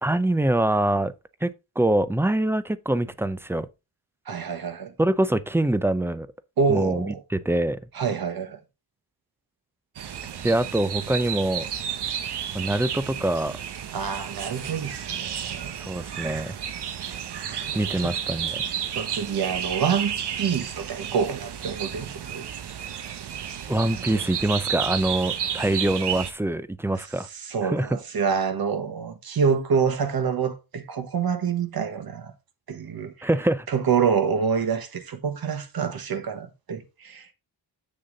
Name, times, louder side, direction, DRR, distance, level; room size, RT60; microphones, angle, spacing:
voice 1, 0.0-1.1 1.4-3.7 5.0-6.3 6.7-7.8 10.4-11.7 12.5-13.6 15.8-16.5 17.7-18.6 23.7-27.3 27.6-28.0 33.2-33.7, right 1 dB, 5° right, 0.4 m, -24 dB
voice 2, 4.3-4.9 6.6-7.2 7.9-8.6 13.9-15.7 17.5-18.1 18.9-22.5 23.8-24.2 27.4-32.3 32.7-33.3 33.7-37.3, right 6 dB, 65° right, 1.3 m, -27 dB
sound 1, 10.0-26.3, right 8 dB, 80° right, 1.0 m, -32 dB
7.4 x 6.6 x 3.9 m
wide cardioid pair, 135°, 39 cm